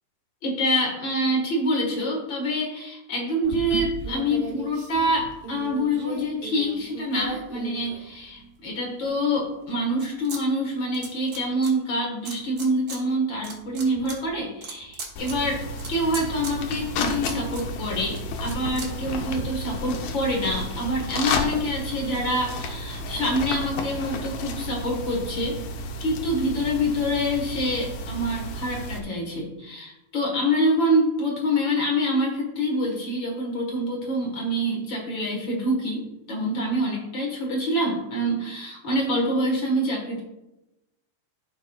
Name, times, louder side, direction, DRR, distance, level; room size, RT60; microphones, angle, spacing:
voice 1, 0.4-15.6 15.9-25.6 26.0-40.2, equal, 45° left, -1 dB, 1.7 m, -26 dB
sound 1, 3.4-8.5 9.0-10.4 10.7-11.7 12.2-13.0 13.3-19.4, right 4 dB, 85° right, 0.9 m, -38 dB
sound 2, 15.2-29.0, left 2 dB, 75° left, 1.7 m, -32 dB
15.0 x 5.2 x 2.4 m, 0.94 s
omnidirectional pair, 4.1 m